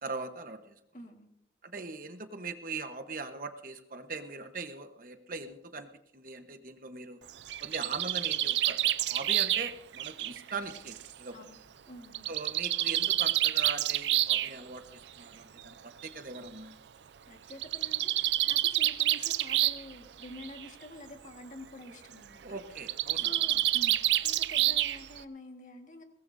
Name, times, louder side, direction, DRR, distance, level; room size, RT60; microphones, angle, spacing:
voice 1, 0.0-0.8 1.6-7.2 7.6-11.4 12.3-15.8 16.0-16.7 22.4-23.6, right 4 dB, 50° right, 7 dB, 1.1 m, -41 dB
voice 2, 0.9-1.3 11.3-11.6 11.9-12.3 17.3-22.6 23.1-26.0, left 1 dB, 45° left, 4 dB, 1.7 m, -48 dB
Bird, 7.3-11.1 12.1-14.5 15.6-15.7 16.0-16.1 16.4-16.5 17.5-19.9 20.2-20.7 22.8-25.2, right 14 dB, 85° right, 0.5 m, -28 dB
22.0 x 18.5 x 2.7 m, 0.79 s
head